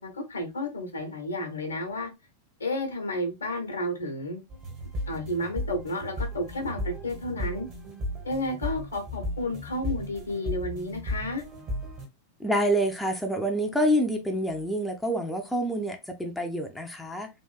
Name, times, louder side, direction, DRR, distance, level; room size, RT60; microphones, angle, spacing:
voice 1, 0.0-2.1 2.6-4.4 5.1-7.7 8.2-11.4, left 1 dB, 75° left, 0.9 m, -32 dB
sound 1, 4.5-12.1, left 1 dB, 40° right, 1.2 m, -35 dB
voice 2, 12.4-17.3, equal, 5° left, 0.6 m, -27 dB
3.5 x 2.5 x 2.3 m
figure-of-eight pair, 90°, 0 cm